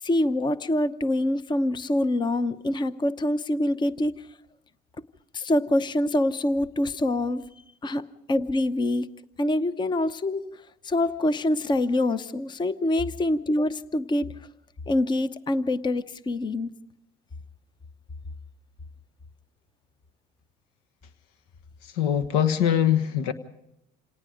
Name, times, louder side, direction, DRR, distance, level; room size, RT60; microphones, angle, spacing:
voice 1, 0.0-4.1 5.3-7.4 7.8-8.0 8.3-9.1 9.4-10.5 10.8-14.3 14.9-16.7, left 1 dB, 20° left, 0.8 m, -25 dB
voice 2, 21.8-23.3, left 10 dB, 85° left, 1.3 m, -23 dB
27.5 x 18.5 x 5.1 m
supercardioid pair, 95°, 20 cm